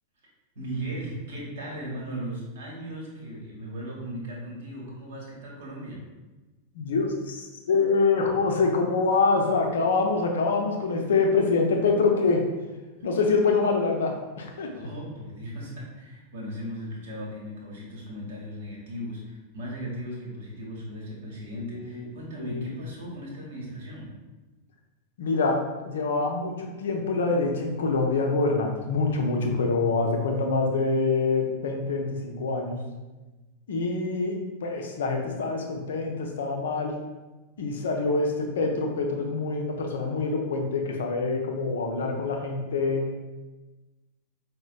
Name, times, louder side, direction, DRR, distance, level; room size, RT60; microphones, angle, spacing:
voice 1, 0.5-6.0 14.7-24.1, equal, 60° right, -4 dB, 1.0 m, -37 dB
voice 2, 6.7-12.4 13.0-14.7 21.7-22.1 22.4-22.7 25.2-25.6 25.8-32.8 33.7-37.0 37.6-43.0, left 4 dB, 60° left, 2 dB, 0.5 m, -25 dB
4.9 x 2.1 x 2.4 m, 1.2 s
figure-of-eight pair, 90°, 0 cm